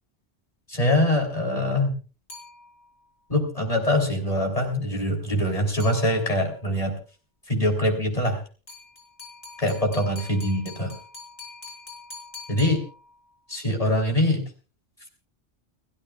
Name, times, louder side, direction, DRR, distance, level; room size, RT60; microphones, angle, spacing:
voice 1, 0.7-1.9 3.3-7.0 7.5-8.4 9.6-10.9 12.5-12.8 13.5-14.4, left 1 dB, 30° left, 1 dB, 3.8 m, -23 dB
sound 1, 2.3-3.1 5.8-6.6 8.7-13.4, left 3 dB, 80° left, 5.3 m, -44 dB
29.5 x 13.5 x 2.4 m, 0.35 s
omnidirectional pair, 1.2 m